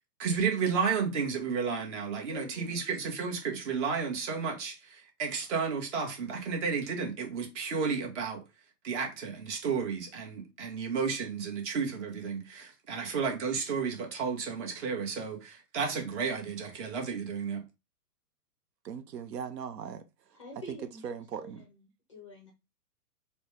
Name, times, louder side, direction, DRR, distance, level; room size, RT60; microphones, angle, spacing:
voice 1, 0.2-8.4 8.8-17.6, right 5 dB, 45° right, 1.3 m, -32 dB
voice 2, 2.3-2.9 20.3-21.0 21.4-21.8 22.1-22.5, left 1 dB, 20° left, 0.4 m, -47 dB
voice 3, 18.8-20.4 20.7-20.8 21.0-21.7, right 7 dB, 80° right, 0.7 m, -39 dB
4.1 x 2.2 x 3.2 m
hypercardioid pair, 145°, 48 cm